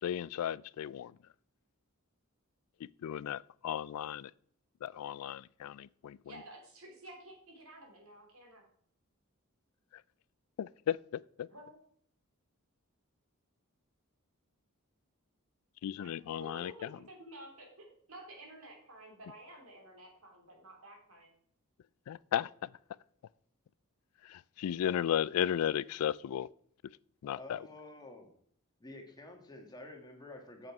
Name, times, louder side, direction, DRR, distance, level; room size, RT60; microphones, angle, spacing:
voice 1, 0.0-1.2 2.8-4.3 4.8-6.4 9.9-10.0 10.6-11.5 15.8-17.0 22.1-22.7 24.2-26.5 27.2-27.7, left 10 dB, 75° left, 0.3 m, -35 dB
voice 2, 6.2-8.7 11.5-11.8 16.0-21.3, right 1 dB, 70° right, 3.0 m, -52 dB
voice 3, 27.3-28.3 28.8-30.7, left 2 dB, 20° left, 1.6 m, -49 dB
7.7 x 7.6 x 4.7 m
head